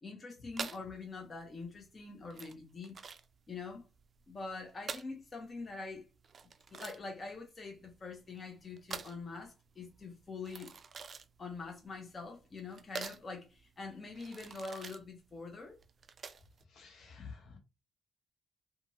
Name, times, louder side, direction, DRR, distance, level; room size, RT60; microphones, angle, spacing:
voice 1, 0.0-3.0 3.5-3.8 4.3-6.1 6.7-10.7 11.4-15.8, left 4 dB, 35° left, 0.8 m, -44 dB
sound 1, 0.5-16.6, right 5 dB, 45° right, 0.3 m, -47 dB
voice 2, 16.7-17.6, left 5 dB, 70° left, 1.0 m, -50 dB
2.9 x 2.5 x 2.8 m
cardioid pair, 90°, 0 cm